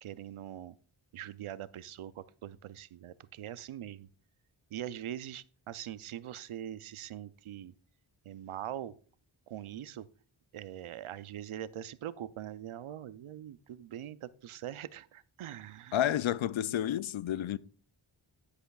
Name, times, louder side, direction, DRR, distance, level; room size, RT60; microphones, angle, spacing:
voice 1, 0.0-0.7 1.1-4.1 4.7-7.7 8.3-8.9 9.5-10.1 10.5-16.1 17.5-17.6, right 11 dB, 85° right, 0.6 m, -42 dB
voice 2, 15.9-17.6, left 11 dB, 70° left, 0.5 m, -30 dB
10.5 x 10.0 x 2.3 m
wide cardioid pair, 65°, 48 cm